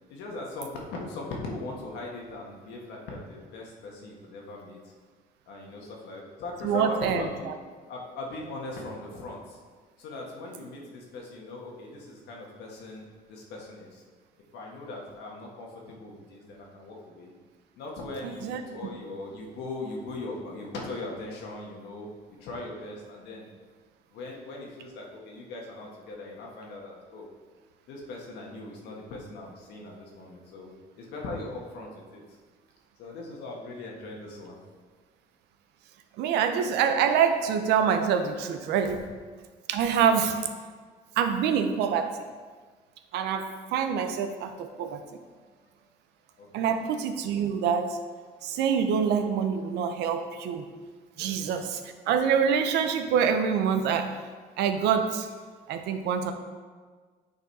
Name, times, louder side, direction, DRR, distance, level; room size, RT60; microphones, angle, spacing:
voice 1, 0.1-4.8 5.5-7.5 7.9-9.6 10.0-14.0 14.5-17.3 17.8-22.1 22.4-23.5 24.1-27.3 27.9-30.7 31.0-32.2 33.0-34.5 40.0-40.2 46.4-46.7 51.2-51.7, left 2 dB, 85° left, -1 dB, 1.5 m, -39 dB
voice 2, 6.6-7.6 18.2-18.6 36.2-39.0 39.7-40.4 41.2-42.2 43.1-45.0 46.5-48.0 48.4-50.7 51.2-54.1 54.6-55.3 55.7-56.3, right 7 dB, 85° right, 7 dB, 0.7 m, -26 dB
8.8 x 4.1 x 4.1 m, 1.5 s
cardioid pair, 110°, 17 cm